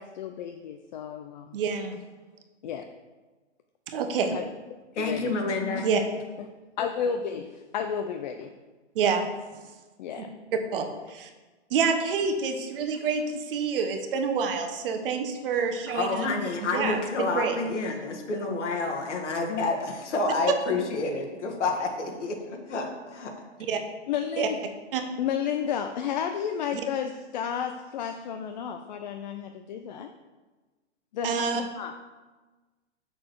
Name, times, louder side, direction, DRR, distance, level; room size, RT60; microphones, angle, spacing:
voice 1, 0.0-1.6 2.6-2.9 4.3-4.4 4.9-5.4 5.7-5.9 6.4-6.5 6.8-8.5 10.0-10.3 16.2-16.3 24.1-24.6 25.2-30.1 31.1-31.9, left 8 dB, 40° left, 6 dB, 0.5 m, -32 dB
voice 2, 1.5-2.0 3.9-4.4 5.8-6.0 8.9-9.3 10.7-11.3 11.7-16.3 16.7-17.6 23.7-23.8 24.4-24.5 24.9-25.0 31.2-31.6, right 5 dB, 50° right, 6 dB, 1.1 m, -27 dB
voice 3, 5.0-5.8 15.9-23.3, left 3 dB, 80° left, 1 dB, 1.8 m, -29 dB
6.7 x 6.3 x 4.6 m, 1.3 s
hypercardioid pair, 145°, 35 cm